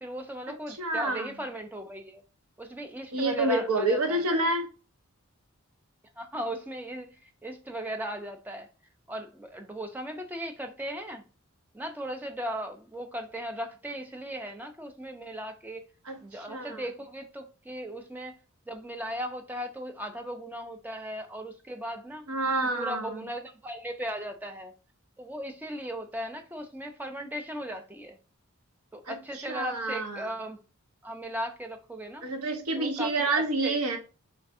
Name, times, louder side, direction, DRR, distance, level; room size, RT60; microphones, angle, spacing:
voice 1, 0.0-2.2 2.6-4.2 6.2-8.7 9.1-11.2 11.7-15.8 16.2-18.4 18.7-22.3 22.8-24.7 25.2-28.2 28.9-30.6 31.0-32.3 32.8-34.0, equal, 10° right, 0.3 m, -37 dB
voice 2, 0.8-1.3 3.1-4.7 16.1-16.2 16.5-16.8 22.3-23.3 29.1-30.3 32.2-34.0, right 2 dB, 85° right, 0.9 m, -28 dB
3.3 x 2.5 x 3.5 m
head